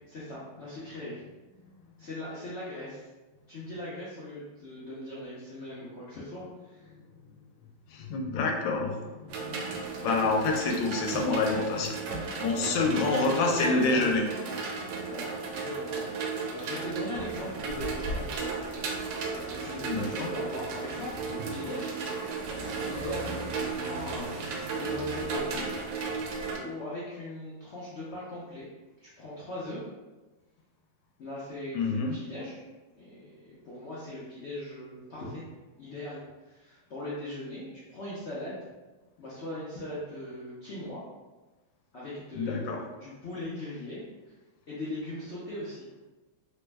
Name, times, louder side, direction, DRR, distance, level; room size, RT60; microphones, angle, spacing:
voice 1, 0.1-1.2 2.0-3.1 3.5-6.9 12.5-14.0 15.0-18.6 19.3-21.9 22.5-25.7 26.5-28.7 29.0-29.8 31.2-32.6 32.9-35.4 35.8-38.6 39.2-41.0 41.9-42.7 43.0-44.3 44.7-45.8, left 1 dB, 70° left, -8 dB, 0.6 m, -39 dB
voice 2, 7.9-12.0 12.4-14.3 19.9-20.3 31.7-32.2 42.3-42.8, left 3 dB, 85° left, 2 dB, 1.3 m, -28 dB
sound 1, 9.3-26.6, right 4 dB, 85° right, 1.3 m, -34 dB
3.2 x 2.0 x 3.3 m, 1.2 s
omnidirectional pair, 2.0 m